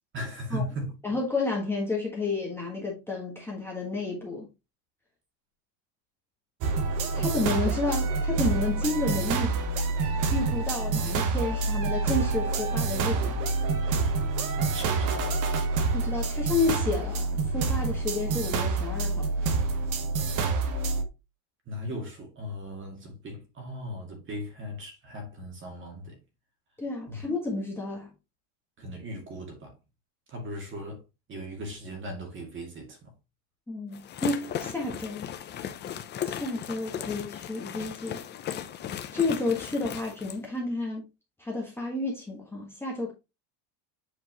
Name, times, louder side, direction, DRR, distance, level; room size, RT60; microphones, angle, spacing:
voice 1, 0.1-0.9 7.1-7.3 14.6-15.5 21.7-26.2 27.1-27.2 28.8-29.7 30.3-31.0 31.3-33.1, equal, 25° right, 2.1 m, -38 dB
voice 2, 1.0-4.5 7.1-9.5 10.3-13.4 15.9-19.3 26.8-28.1 33.7-35.3 36.2-38.2 39.1-41.0 41.4-43.1, left 3 dB, 5° left, 1.4 m, -31 dB
sound 1, 6.6-21.0, right 3 dB, 45° right, 1.2 m, -27 dB
sound 2, 33.9-40.4, left 9 dB, 25° left, 0.5 m, -37 dB
7.9 x 4.5 x 2.9 m
cardioid pair, 165°, 45 cm